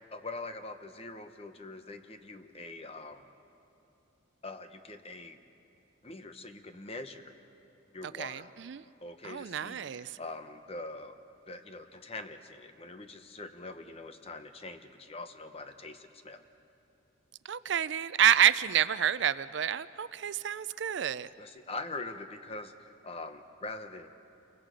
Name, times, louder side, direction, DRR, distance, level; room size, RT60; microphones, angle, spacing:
voice 1, 0.1-3.3 4.4-5.4 6.0-7.2 7.9-8.5 9.0-11.2 11.5-16.4 21.4-24.1, left 2 dB, 30° left, 8 dB, 0.9 m, -43 dB
voice 2, 8.2-8.8 9.2-10.2 17.5-21.3, right 9 dB, 60° right, 16 dB, 0.4 m, -28 dB
28.0 x 23.5 x 5.1 m, 2.7 s
head